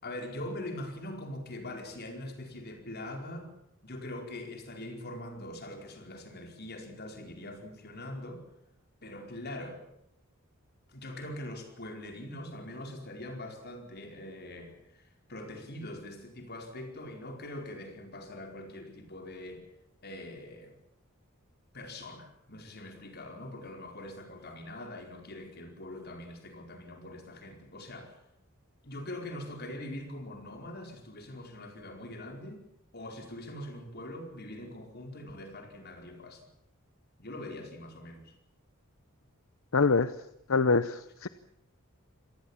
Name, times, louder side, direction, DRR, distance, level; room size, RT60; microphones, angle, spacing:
voice 1, 0.0-3.5 3.8-8.4 9.0-9.8 10.9-19.6 20.0-20.8 21.7-28.2 28.8-32.7 32.9-36.4 37.2-38.3, left 1 dB, 50° left, 4 dB, 4.7 m, -42 dB
voice 2, 39.7-40.1 40.5-41.3, left 4 dB, 70° left, 14 dB, 0.8 m, -25 dB
26.5 x 18.5 x 7.3 m, 0.76 s
head